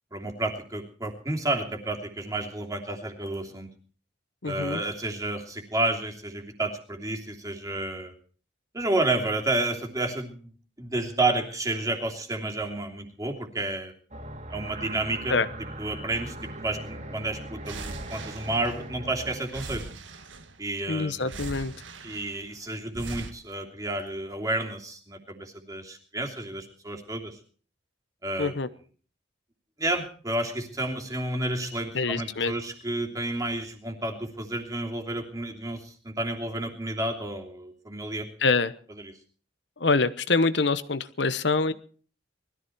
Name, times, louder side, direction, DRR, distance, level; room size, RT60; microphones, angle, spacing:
voice 1, 0.1-3.7 4.4-8.1 8.7-10.5 10.8-13.9 14.5-15.4 15.8-19.8 20.6-21.4 22.0-27.4 28.2-28.5 29.8-38.3 39.0-39.1, right 2 dB, 20° right, 2 dB, 3.0 m, -31 dB
voice 2, 4.4-4.8 15.3-15.5 20.9-21.7 28.4-28.7 31.9-32.5 38.4-38.7 39.8-41.7, left 3 dB, 65° left, 13 dB, 1.0 m, -25 dB
sound 1, 14.1-19.4, right 1 dB, 40° right, 2.7 m, -39 dB
sound 2, 17.7-19.1 19.4-20.7 21.2-22.5 22.9-23.3, right 3 dB, 85° right, 2.0 m, -40 dB
20.5 x 14.0 x 4.6 m, 0.43 s
head